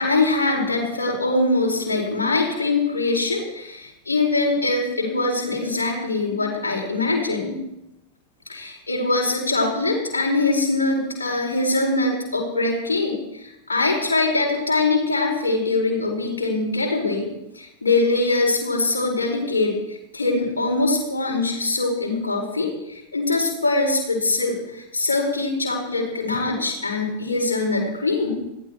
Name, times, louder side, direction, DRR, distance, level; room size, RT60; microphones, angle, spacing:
voice 1, 0.0-7.6 8.5-17.3 17.5-28.4, left 3 dB, 75° left, -1 dB, 4.7 m, -23 dB
21.0 x 15.0 x 4.5 m, 0.91 s
figure-of-eight pair, 90°, 0 cm